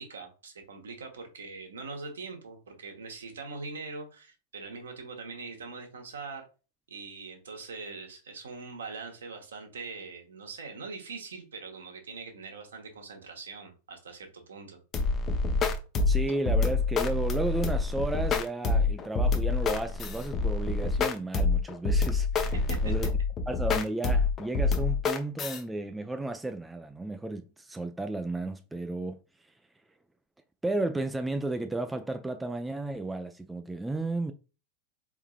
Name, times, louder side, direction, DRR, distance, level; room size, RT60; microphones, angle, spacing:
voice 1, 0.0-6.4 6.9-14.8 22.5-22.9, right 4 dB, 65° right, 1.1 m, -42 dB
sound 1, 14.9-25.6, left 3 dB, 25° left, 0.7 m, -27 dB
voice 2, 16.1-22.6 22.8-23.1 23.5-29.2 30.6-34.3, right 2 dB, 5° right, 0.4 m, -33 dB
4.5 x 3.6 x 2.4 m
figure-of-eight pair, 90°, 0 cm